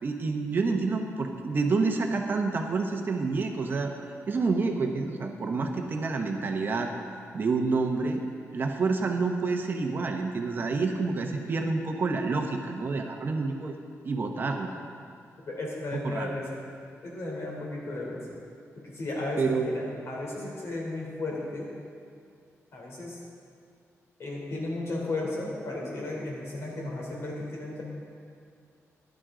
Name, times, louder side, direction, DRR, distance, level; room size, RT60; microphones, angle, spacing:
voice 1, 0.0-3.9 4.3-6.9 7.3-8.2 8.5-13.7 14.0-14.8 16.0-16.3 19.4-19.9, right 4 dB, 40° right, 3 dB, 0.9 m, -28 dB
voice 2, 15.5-16.6 17.0-18.4 18.8-21.7 22.7-23.2 24.2-27.8, left 2 dB, 55° left, -3 dB, 3.4 m, -34 dB
16.0 x 11.5 x 3.8 m, 2.4 s
wide cardioid pair, 170°, 5 cm